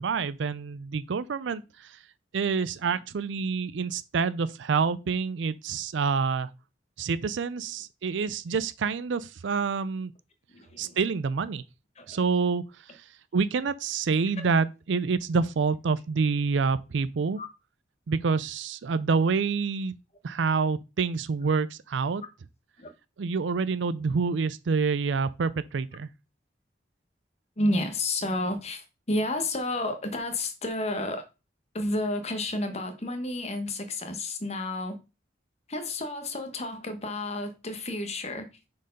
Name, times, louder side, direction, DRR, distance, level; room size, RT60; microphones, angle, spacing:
voice 1, 0.0-2.0 2.3-6.5 7.0-10.1 10.8-11.6 12.1-12.6 12.9-13.0 13.3-17.4 18.1-19.9 20.2-22.2 23.2-26.1, right 5 dB, 80° right, 0.4 m, -27 dB
voice 2, 10.5-11.0 12.0-12.2 17.4-17.5 22.8-22.9 27.6-31.2 31.7-35.0 35.7-38.5, left 1 dB, 35° left, 1.2 m, -31 dB
6.3 x 4.5 x 5.2 m
head